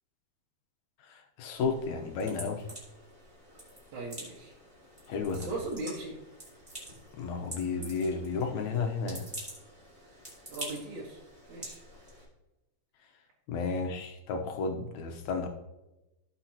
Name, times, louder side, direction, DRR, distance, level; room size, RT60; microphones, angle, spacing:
voice 1, 1.4-2.6 5.1-5.5 7.2-9.3 13.5-15.5, left 4 dB, 70° left, 3 dB, 2.2 m, -32 dB
sound 1, 1.5-12.3, right 1 dB, 15° right, 3.6 m, -47 dB
voice 2, 3.9-4.5 5.2-6.1 10.5-11.2 11.5-11.8 13.6-13.9, right 2 dB, 70° right, -6 dB, 3.0 m, -39 dB
17.0 x 6.1 x 2.9 m, 0.99 s
omnidirectional pair, 3.6 m